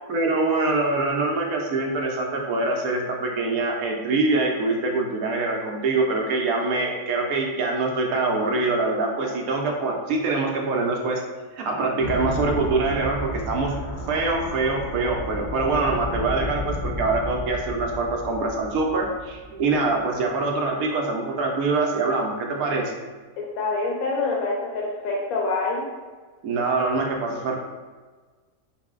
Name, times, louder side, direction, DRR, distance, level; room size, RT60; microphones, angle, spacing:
voice 1, 0.1-11.2 11.6-13.8 14.1-22.9 26.4-27.5, right 3 dB, 75° right, 1 dB, 1.1 m, -24 dB
sound 1, 12.0-20.1, left 1 dB, 50° left, 0.6 m, -33 dB
voice 2, 23.4-25.8, left 3 dB, 80° left, -2 dB, 1.1 m, -26 dB
4.7 x 2.0 x 3.6 m, 1.4 s
omnidirectional pair, 1.5 m